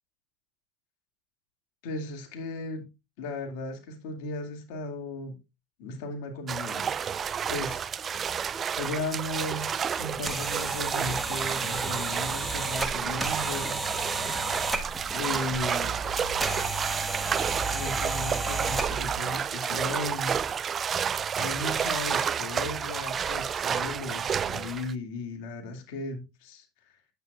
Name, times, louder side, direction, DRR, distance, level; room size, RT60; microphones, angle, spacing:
voice 1, 1.8-2.9 3.2-5.4 5.8-6.9 7.5-7.9 8.8-13.8 15.1-16.0 17.7-20.4 21.4-27.0, left 2 dB, 70° left, 2.2 m, -36 dB
sound 1, 6.5-24.9, right 7 dB, 35° right, 0.3 m, -30 dB
sound 2, 10.0-19.2, right 2 dB, 15° right, 1.2 m, -33 dB
9.2 x 8.2 x 2.4 m
hypercardioid pair, 95°, 0 cm